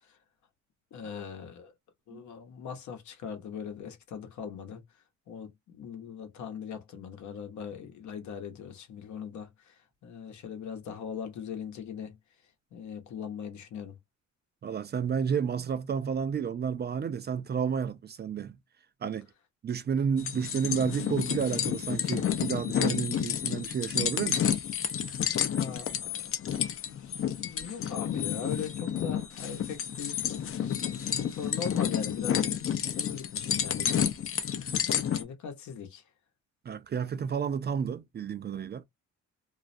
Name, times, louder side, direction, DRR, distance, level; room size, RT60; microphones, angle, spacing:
voice 1, 0.9-1.7 2.1-4.8 5.3-9.7 10.0-12.2 12.7-14.0 25.5-26.5 26.9-32.7 32.9-34.1 35.0-36.0, left 7 dB, 70° left, 0.9 m, -40 dB
voice 2, 14.6-18.6 19.0-19.3 19.6-24.5 36.7-38.8, right 7 dB, 35° right, 0.4 m, -31 dB
sound 1, 20.2-35.2, left 9 dB, 45° left, 0.6 m, -30 dB
2.4 x 2.0 x 2.5 m
cardioid pair, 90°, 30 cm